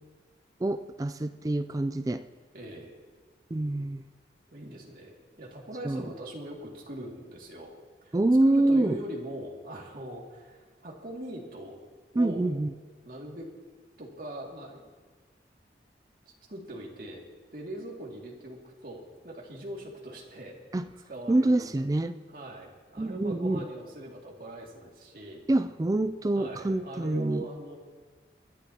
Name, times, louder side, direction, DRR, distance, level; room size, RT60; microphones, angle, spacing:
voice 1, 0.6-2.2 3.5-4.0 5.8-6.0 8.1-9.0 12.2-12.7 20.7-20.8 21.3-22.2 23.0-23.6 25.5-27.4, right 2 dB, 20° right, 11 dB, 0.3 m, -26 dB
voice 2, 2.5-2.9 4.5-7.7 8.0-8.2 8.4-11.8 12.1-12.5 13.0-13.5 14.0-14.8 16.5-17.2 17.5-20.6 21.1-21.7 22.3-25.4 26.3-27.8, right 1 dB, 50° right, -2 dB, 2.4 m, -41 dB
24.0 x 11.0 x 2.9 m, 1.5 s
head